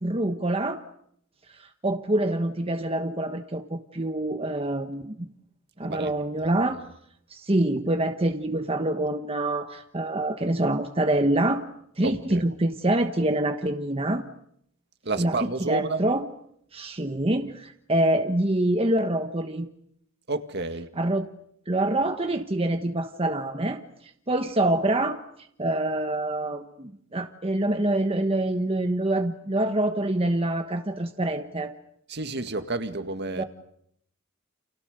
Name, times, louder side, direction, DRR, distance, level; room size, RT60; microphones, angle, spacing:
voice 1, 0.0-0.8 1.5-5.3 5.8-6.8 7.3-11.6 12.0-14.3 15.2-16.2 16.7-19.7 21.0-21.3 21.7-31.7 33.3-33.4, right 1 dB, 25° right, 1.2 m, -26 dB
voice 2, 5.8-6.1 12.0-12.4 15.0-16.1 20.3-20.9 32.1-33.4, right 3 dB, 55° right, 2.0 m, -30 dB
30.0 x 29.0 x 6.7 m
head